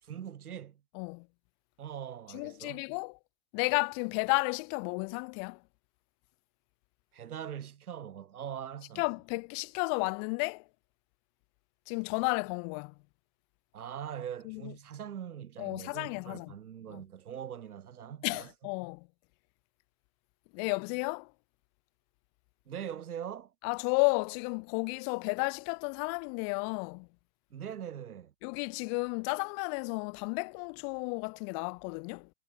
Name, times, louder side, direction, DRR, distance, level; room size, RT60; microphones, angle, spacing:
voice 1, 0.0-0.8 1.8-2.8 7.1-9.0 13.7-18.5 22.7-23.5 27.5-28.3, right 9 dB, 80° right, 4.6 m, -42 dB
voice 2, 0.9-1.3 2.3-3.2 3.5-5.6 9.0-10.6 11.9-12.9 14.4-14.7 15.6-16.5 16.9-17.0 18.2-19.1 20.5-21.3 23.6-27.1 28.4-32.3, left 40 dB or more, 40° left, 0.9 m, -32 dB
hypercardioid pair, 110°, 44 cm